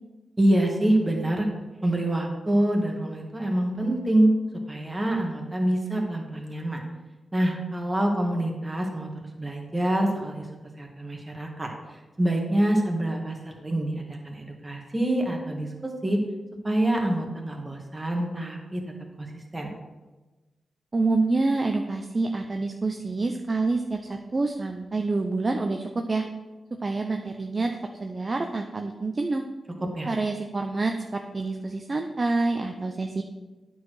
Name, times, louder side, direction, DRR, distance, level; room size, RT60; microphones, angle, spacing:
voice 1, 0.4-1.5 1.8-4.3 4.7-6.8 7.3-9.1 9.4-10.5 10.8-16.2 16.6-18.8 19.2-19.3 19.5-19.7 29.9-30.1, right 1 dB, 20° right, 1 dB, 1.9 m, -26 dB
voice 2, 20.9-26.3 26.8-29.4 30.1-33.2, right 3 dB, 35° right, 4 dB, 0.6 m, -27 dB
9.1 x 4.7 x 6.3 m, 1.2 s
cardioid pair, 75°, 0 cm